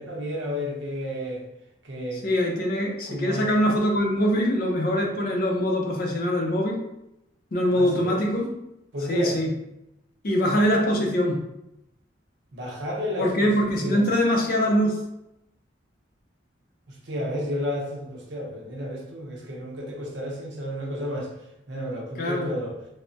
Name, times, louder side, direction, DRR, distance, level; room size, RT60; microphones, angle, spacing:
voice 1, 0.0-1.4 1.8-2.3 3.1-3.7 7.7-8.2 8.9-9.4 12.5-14.1 17.1-21.3 21.7-22.8, equal, 70° right, -1 dB, 0.7 m, -32 dB
voice 2, 2.1-6.8 7.5-8.5 9.1-9.5 10.2-11.4 13.2-15.0 22.2-22.5, equal, 50° left, 1 dB, 0.5 m, -23 dB
3.2 x 2.1 x 2.6 m, 0.87 s
head